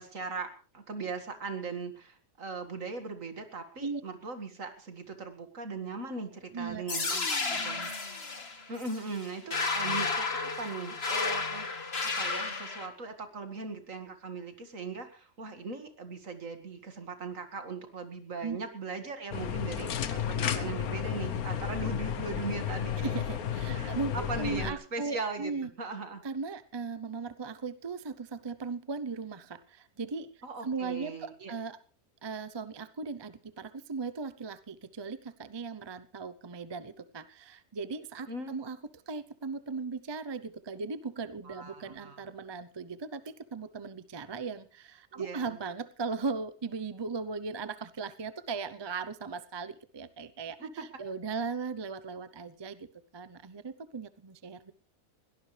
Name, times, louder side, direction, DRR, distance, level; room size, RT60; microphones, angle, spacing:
voice 1, 0.0-7.8 8.7-23.1 23.7-25.5 25.8-26.2 30.4-31.5 38.3-38.6 41.4-42.2 45.1-45.6 50.6-50.9, right 4 dB, 60° right, 7 dB, 2.4 m, -39 dB
voice 2, 6.5-6.8 7.1-7.9 18.4-18.6 23.0-25.7 26.2-31.8 32.2-38.8 39.1-52.9 53.1-54.7, right 4 dB, 30° right, 13 dB, 0.4 m, -38 dB
sound 1, 6.9-12.9, left 4 dB, 40° left, 1.9 m, -32 dB
sound 2, 19.3-24.7, left 8 dB, 70° left, 1.4 m, -32 dB
22.0 x 17.5 x 3.3 m, 0.39 s
omnidirectional pair, 1.6 m